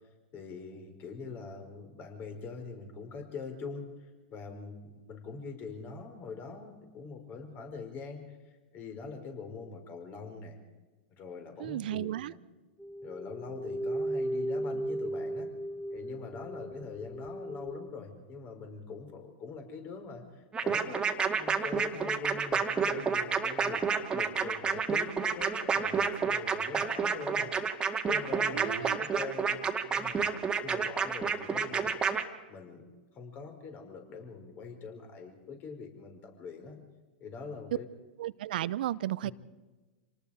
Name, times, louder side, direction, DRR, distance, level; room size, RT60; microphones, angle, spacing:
voice 1, 0.3-10.6 11.1-12.3 13.0-15.5 15.9-30.3 30.6-32.0 32.5-36.8 37.2-37.9 39.2-39.3, left 4 dB, 35° left, 5 dB, 4.9 m, -43 dB
voice 2, 11.6-12.3 28.5-29.0 38.2-39.3, right 13 dB, 65° right, 19 dB, 0.6 m, -34 dB
sound 1, 12.8-17.9, right 1 dB, 5° left, 1.0 m, -36 dB
sound 2, 20.5-32.2, right 6 dB, 15° right, 2.0 m, -29 dB
28.0 x 19.5 x 5.1 m, 1.2 s
hypercardioid pair, 100°, 5 cm